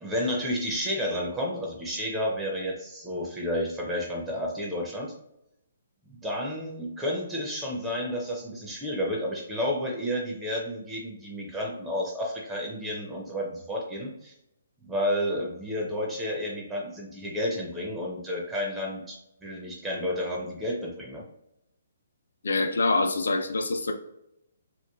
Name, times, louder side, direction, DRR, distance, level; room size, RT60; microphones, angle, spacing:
voice 1, 0.0-5.1 6.1-14.3 14.8-21.2, equal, 10° right, -2 dB, 0.5 m, -31 dB
voice 2, 22.4-23.9, left 3 dB, 80° left, 6 dB, 0.4 m, -25 dB
2.9 x 2.1 x 2.2 m, 0.81 s
hypercardioid pair, 140°, 0 cm